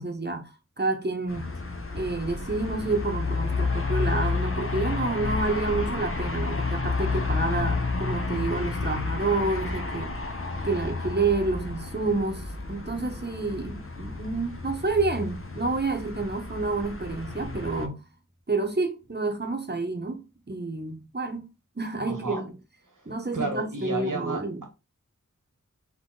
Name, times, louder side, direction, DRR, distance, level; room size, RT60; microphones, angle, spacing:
voice 1, 0.0-1.6 1.9-10.2 10.6-18.1 18.5-21.5 21.8-22.5 23.1-24.6, right 3 dB, 30° right, 1.0 m, -29 dB
sound 1, 1.3-17.9, left 3 dB, 45° left, 0.8 m, -31 dB
voice 2, 22.0-22.4 22.9-24.7, right 2 dB, 75° right, 1.5 m, -33 dB
3.8 x 3.0 x 3.9 m
wide cardioid pair, 45°, 32 cm